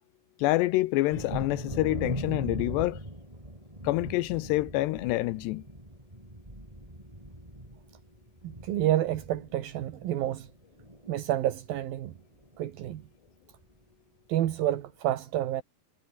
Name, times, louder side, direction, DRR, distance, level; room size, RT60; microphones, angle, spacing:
voice 1, 0.4-3.0 3.8-5.6, left 18 dB, 80° left, 2.8 m, -27 dB
Thunder, 1.1-10.5 10.8-11.5 11.9-12.0 12.4-12.6, right 1 dB, 5° right, 7.0 m, -40 dB
voice 2, 8.4-10.5 11.1-12.1 12.6-13.0 14.3-15.6, right 13 dB, 65° right, 3.0 m, -29 dB
omnidirectional pair, 5.0 m